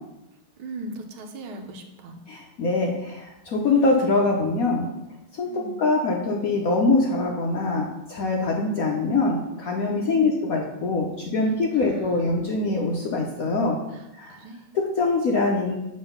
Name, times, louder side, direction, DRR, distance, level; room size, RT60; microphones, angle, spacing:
voice 1, 0.6-2.2 5.4-5.8 10.0-10.4 11.7-12.3 13.9-14.6, right 1 dB, 80° right, 5 dB, 1.7 m, -39 dB
voice 2, 2.3-4.9 5.3-13.8 14.2-14.4 14.7-15.7, left 3 dB, 65° left, 0 dB, 0.9 m, -23 dB
7.5 x 3.9 x 5.4 m, 0.93 s
omnidirectional pair, 2.3 m